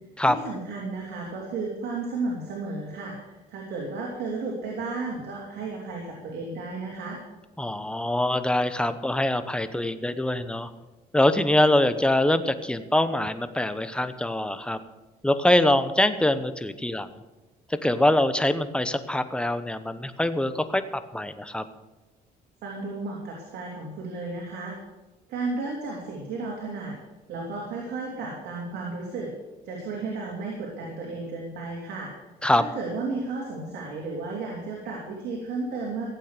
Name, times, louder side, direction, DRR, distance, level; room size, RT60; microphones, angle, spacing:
voice 1, 0.3-7.2 22.6-24.7 25.3-26.9 27.3-29.3 29.6-32.1 32.6-36.1, right 3 dB, 75° right, -2 dB, 3.2 m, -33 dB
voice 2, 7.6-10.7 11.1-14.8 15.2-17.1 17.7-20.8 21.1-21.6 32.4-32.6, left 1 dB, 5° left, 11 dB, 0.9 m, -24 dB
15.5 x 8.5 x 6.8 m, 1.1 s
cardioid pair, 110°, 17 cm